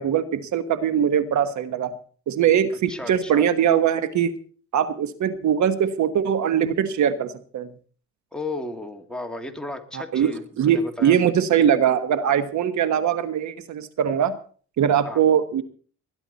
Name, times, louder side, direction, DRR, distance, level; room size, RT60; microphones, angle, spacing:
voice 1, 0.0-1.9 2.3-4.3 4.7-7.7 9.9-14.4 14.8-15.6, right 9 dB, 70° right, 11 dB, 1.3 m, -21 dB
voice 2, 2.9-3.4 8.3-11.1 15.0-15.2, left 2 dB, 5° left, 3 dB, 2.5 m, -34 dB
20.5 x 11.0 x 4.2 m, 0.43 s
cardioid pair, 90°, 30 cm